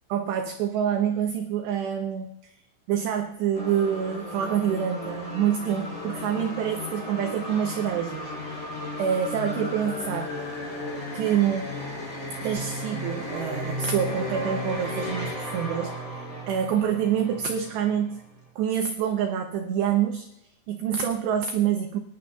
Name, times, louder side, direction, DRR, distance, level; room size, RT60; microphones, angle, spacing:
voice 1, 0.1-2.6 2.9-8.6 9.0-10.3 11.1-11.7 12.4-18.2 18.6-20.3 20.7-22.0, right 9 dB, 85° right, 4 dB, 2.4 m, -27 dB
sound 1, 3.5-18.4, left 1 dB, 25° left, 2.0 m, -35 dB
24.5 x 11.0 x 2.3 m, 0.82 s
omnidirectional pair, 6.0 m